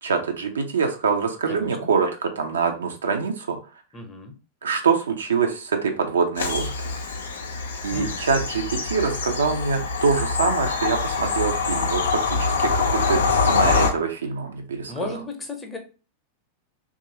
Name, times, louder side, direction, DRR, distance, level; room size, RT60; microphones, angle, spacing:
voice 1, 0.0-3.6 4.6-6.7 7.8-15.1, right 5 dB, 70° right, 5 dB, 0.5 m, -24 dB
voice 2, 1.5-1.9 3.9-4.4 7.9-8.2 14.9-15.8, left 3 dB, 15° left, 4 dB, 0.7 m, -35 dB
Bird vocalization bird call bird song / Train, 6.4-13.9, left 4 dB, 65° left, 0.4 m, -24 dB
2.9 x 2.4 x 2.7 m, 0.33 s
figure-of-eight pair, 90°, 0 cm